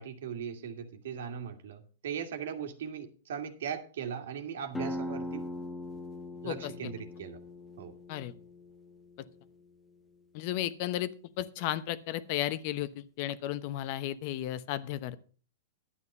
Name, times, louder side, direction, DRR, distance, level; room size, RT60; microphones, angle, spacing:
voice 1, 0.0-5.5 6.4-7.4 7.8-7.9, right 7 dB, 75° right, 8 dB, 2.0 m, -39 dB
sound 1, 4.7-10.2, left 1 dB, 5° left, 1.1 m, -41 dB
voice 2, 10.3-11.1 11.4-15.2, left 13 dB, 45° left, 15 dB, 0.9 m, -34 dB
11.5 x 9.1 x 5.4 m, 0.39 s
hypercardioid pair, 145°, 0 cm